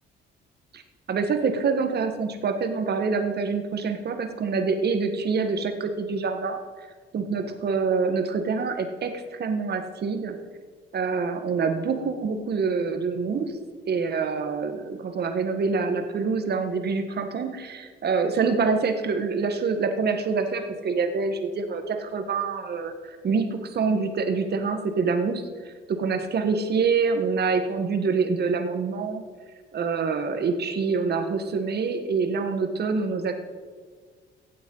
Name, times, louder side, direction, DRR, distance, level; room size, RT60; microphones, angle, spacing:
voice 1, 1.1-6.6 7.1-10.4 10.9-13.6 13.9-29.2 29.7-33.5, right 5 dB, 55° right, 7 dB, 1.6 m, -26 dB
16.0 x 8.4 x 5.6 m, 1.5 s
cardioid pair, 90°, 20 cm